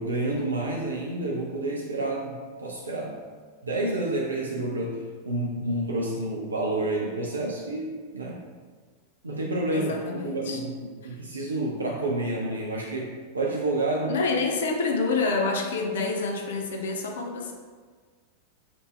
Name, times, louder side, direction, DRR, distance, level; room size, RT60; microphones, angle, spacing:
voice 1, 0.0-3.2 3.6-8.4 9.2-14.2, right 2 dB, 80° right, -2 dB, 0.5 m, -29 dB
voice 2, 9.7-10.6 11.0-11.2 14.1-17.5, left 4 dB, 60° left, 3 dB, 0.6 m, -27 dB
4.4 x 2.7 x 4.3 m, 1.6 s
figure-of-eight pair, 90°, 0 cm